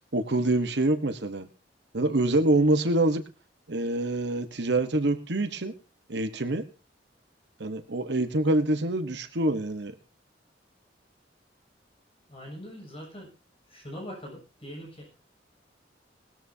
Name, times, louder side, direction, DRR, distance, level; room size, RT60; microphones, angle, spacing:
voice 1, 0.1-1.5 1.9-3.2 3.7-5.7 6.1-6.6 7.6-10.0, right 2 dB, 65° right, 8 dB, 1.2 m, -25 dB
voice 2, 12.3-13.3 13.7-15.2, equal, 35° left, 0 dB, 7.7 m, -42 dB
20.0 x 13.5 x 2.8 m, 0.33 s
head